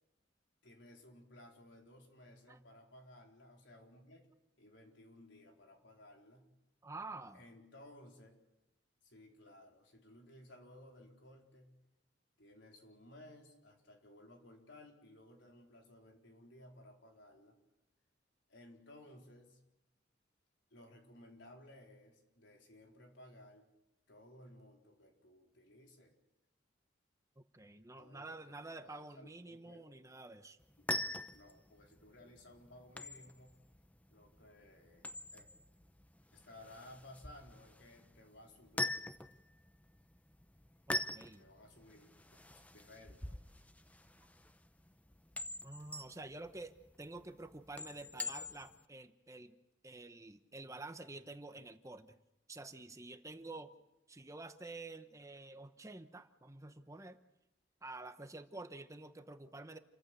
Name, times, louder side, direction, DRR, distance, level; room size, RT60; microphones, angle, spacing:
voice 1, 0.6-4.3 4.6-6.5 7.3-8.4 9.0-11.8 12.4-17.6 18.5-19.6 20.7-23.7 24.1-26.1 28.0-29.8 30.8-30.9 31.3-33.6 34.1-35.5 36.3-39.0 41.4-43.4, left 1 dB, 80° left, 1 dB, 4.3 m, -58 dB
voice 2, 6.8-7.4 27.4-30.6 40.9-41.5 45.6-49.6 49.8-52.2 52.5-53.7 54.1-57.2 57.8-59.8, right 2 dB, 15° right, 9 dB, 1.0 m, -49 dB
sound 1, 30.6-48.8, left 2 dB, 10° left, 0.8 m, -44 dB
28.5 x 15.0 x 8.3 m, 0.96 s
head